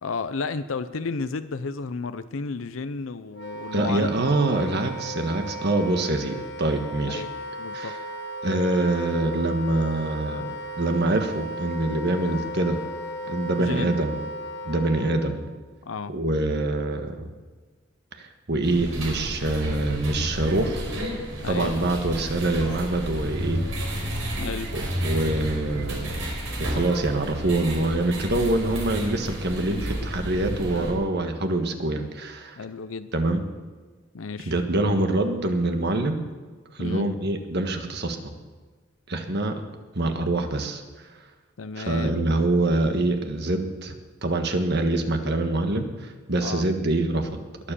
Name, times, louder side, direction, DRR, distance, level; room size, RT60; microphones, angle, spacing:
voice 1, 0.0-4.3 4.5-4.6 7.1-7.3 7.6-8.0 13.6-14.0 15.8-16.1 21.4-21.7 24.4-24.7 32.6-33.1 34.1-34.5 36.8-37.1 41.6-42.2 46.4-46.7, left 4 dB, 90° left, 11 dB, 0.6 m, -32 dB
Wind instrument woodwind instrument, 3.3-15.3, equal, 60° left, 1.3 m, -35 dB
voice 2, 3.7-7.2 7.7-8.0 8.4-12.8 13.3-14.2 14.6-15.5 16.1-17.3 18.1-20.8 21.5-23.6 25.0-26.1 26.6-32.6 33.1-33.4 34.5-36.2 36.7-38.2 39.1-39.6 39.9-40.8 41.8-43.9 44.2-47.7, right 2 dB, 60° right, 6 dB, 1.5 m, -25 dB
sound 1, 18.6-30.9, equal, 90° right, 4.6 m, -31 dB
21.0 x 7.5 x 6.9 m, 1.4 s
head